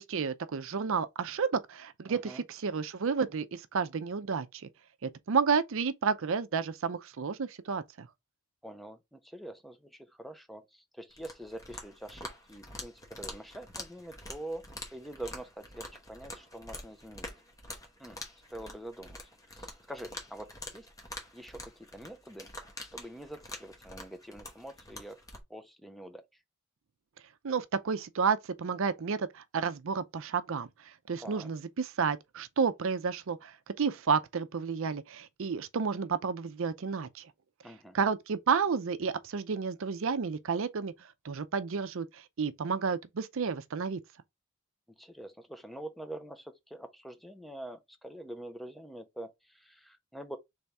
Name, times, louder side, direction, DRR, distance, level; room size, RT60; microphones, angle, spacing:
voice 1, 0.0-4.7 5.0-8.1 27.4-37.3 37.9-44.0, right 5 dB, 60° right, 0.5 m, -31 dB
voice 2, 2.1-2.4 8.6-14.6 14.9-17.3 18.0-18.2 18.5-19.2 19.5-20.9 21.3-22.5 22.9-25.2 25.5-26.2 31.2-31.5 37.6-38.0 45.0-50.4, right 1 dB, ahead, 0.5 m, -45 dB
sound 1, 11.1-25.4, left 2 dB, 15° left, 1.0 m, -46 dB
3.4 x 3.4 x 4.1 m
head